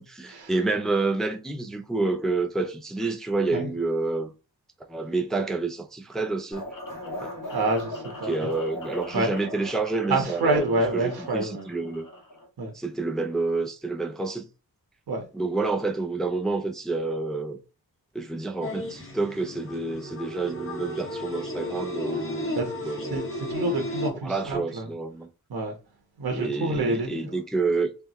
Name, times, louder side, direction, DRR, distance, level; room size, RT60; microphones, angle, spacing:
voice 1, 0.0-4.3 4.9-6.6 7.2-7.3 8.3-10.7 10.9-12.1 12.7-14.5 15.3-17.6 18.1-22.5 22.8-23.1 24.2-25.3 26.3-27.9, right 3 dB, ahead, 0.4 m, -28 dB
sound 1, 6.5-12.5, left 1 dB, 55° left, 1.5 m, -39 dB
voice 2, 7.5-8.5 9.1-9.3 10.1-11.7 12.6-12.7 15.1-15.2 22.5-24.9 25.5-25.7 26.2-27.4, right 2 dB, 75° right, 1.2 m, -28 dB
sound 2, 18.6-24.1, left 1 dB, 35° left, 1.2 m, -33 dB
3.5 x 3.3 x 3.0 m
wide cardioid pair, 115°, 38 cm